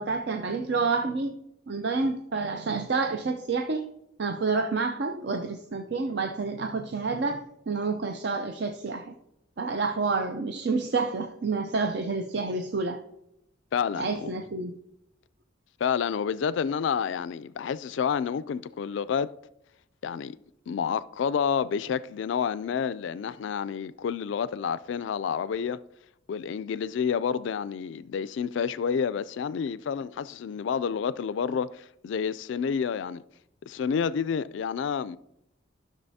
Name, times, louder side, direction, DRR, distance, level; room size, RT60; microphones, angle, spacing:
voice 1, 0.0-1.3 1.7-3.9 4.2-9.1 9.6-13.0 14.0-14.7, right 4 dB, 60° right, 0.5 m, -29 dB
voice 2, 13.7-14.3 15.8-19.3 20.0-20.4 20.7-25.8 26.3-33.2 33.7-35.2, left 7 dB, 70° left, 0.3 m, -29 dB
13.5 x 6.3 x 2.7 m
head